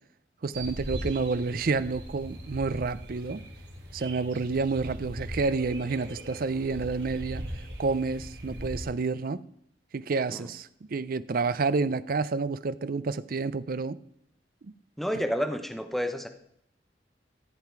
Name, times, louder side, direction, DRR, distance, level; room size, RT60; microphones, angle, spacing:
voice 1, 0.4-3.4 3.9-7.4 7.8-9.4 9.9-14.0, right 4 dB, 55° right, 0.5 m, -29 dB
sound 1, 0.5-8.8, right 1 dB, 70° right, 2.8 m, -40 dB
voice 2, 15.0-16.3, equal, ahead, 0.8 m, -30 dB
14.5 x 7.6 x 4.6 m
head